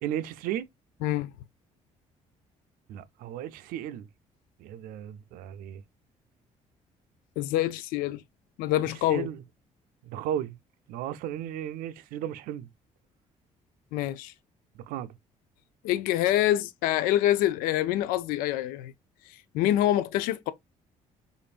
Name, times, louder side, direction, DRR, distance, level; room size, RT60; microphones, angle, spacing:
voice 1, 0.0-0.7 2.9-4.1 4.6-5.8 9.1-9.4 10.0-10.6 10.9-12.7 14.9-15.1, right 11 dB, 80° right, 0.5 m, -34 dB
voice 2, 1.0-1.3 7.4-8.2 8.6-9.3 13.9-14.3 15.8-18.9 19.3-20.5, left 13 dB, 90° left, 0.4 m, -26 dB
5.0 x 2.6 x 2.4 m
supercardioid pair, 75°, 14 cm